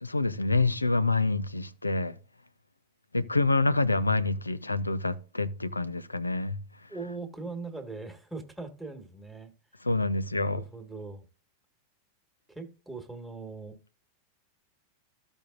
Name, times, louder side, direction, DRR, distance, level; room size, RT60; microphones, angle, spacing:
voice 1, 0.0-2.2 3.1-6.6 9.8-10.6, left 3 dB, 80° left, 0.6 m, -27 dB
voice 2, 6.9-9.5 10.4-11.2 12.5-13.8, right 3 dB, ahead, 1.6 m, -40 dB
14.5 x 5.3 x 2.5 m
figure-of-eight pair, 90°, 0 cm